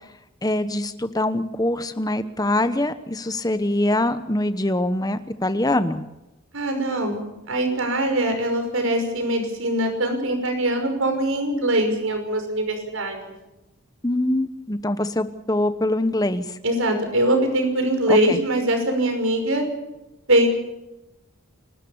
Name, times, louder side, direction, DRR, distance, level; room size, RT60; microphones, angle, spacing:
voice 1, 0.4-6.1 14.0-16.4 18.1-18.4, left 1 dB, 15° left, 11 dB, 1.0 m, -23 dB
voice 2, 6.5-7.2 7.5-13.3 16.6-19.7 20.3-20.5, right 1 dB, 70° right, 5 dB, 5.8 m, -22 dB
30.0 x 13.5 x 7.1 m, 0.96 s
head